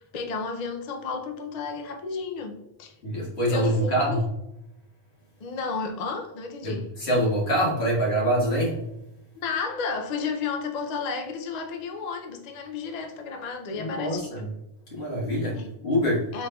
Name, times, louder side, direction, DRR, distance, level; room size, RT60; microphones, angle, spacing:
voice 1, 0.1-2.9 3.5-4.3 5.4-6.9 9.3-14.5 15.6-15.7 16.3-16.5, left 4 dB, 50° left, 4 dB, 0.5 m, -32 dB
voice 2, 3.0-4.2 6.6-8.8 13.8-14.4 14.9-16.3, equal, 70° left, -4 dB, 1.8 m, -25 dB
4.9 x 4.0 x 2.3 m, 0.88 s
omnidirectional pair, 1.2 m